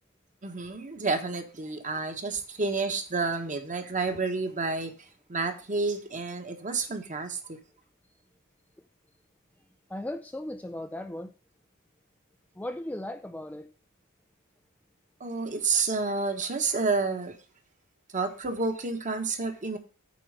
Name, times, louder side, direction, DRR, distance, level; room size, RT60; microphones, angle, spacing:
voice 1, 0.4-4.9 5.3-7.6 15.2-17.4 18.1-19.8, right 4 dB, 35° right, 1.3 m, -30 dB
voice 2, 9.9-11.3 12.6-13.7, left 1 dB, 5° left, 0.4 m, -37 dB
8.5 x 4.6 x 6.7 m
head